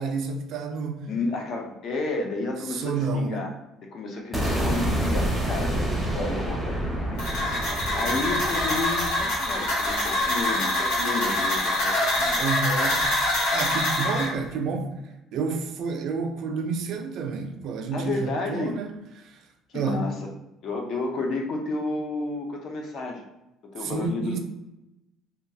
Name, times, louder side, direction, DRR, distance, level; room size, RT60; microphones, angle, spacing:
voice 1, 0.0-1.1 2.7-3.4 12.4-13.0 13.5-14.9 15.3-18.9 19.2-19.4 19.7-20.1 23.8-24.4, right 4 dB, 55° right, 0.4 m, -29 dB
voice 2, 1.1-3.5 3.9-12.4 17.9-18.8 19.7-20.3 20.6-23.3 23.6-24.4, left 3 dB, 50° left, 0.5 m, -31 dB
sound 1, 4.3-10.4, right 1 dB, ahead, 0.6 m, -28 dB
sound 2, 7.2-14.3, left 1 dB, 80° left, 1.1 m, -25 dB
2.8 x 2.3 x 2.6 m
cardioid pair, 145°, 0 cm